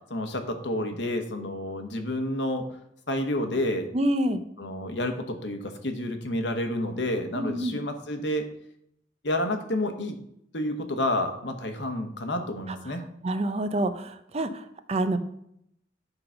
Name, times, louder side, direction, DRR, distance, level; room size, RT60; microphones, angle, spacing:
voice 1, 0.1-2.7 3.1-3.9 4.6-8.5 9.2-10.2 10.5-13.0, left 1 dB, 70° left, 6 dB, 1.1 m, -29 dB
voice 2, 3.9-4.4 7.3-7.8 12.7-12.8 13.2-15.2, right 1 dB, 35° right, 9 dB, 0.6 m, -27 dB
9.8 x 3.9 x 5.7 m, 0.75 s
head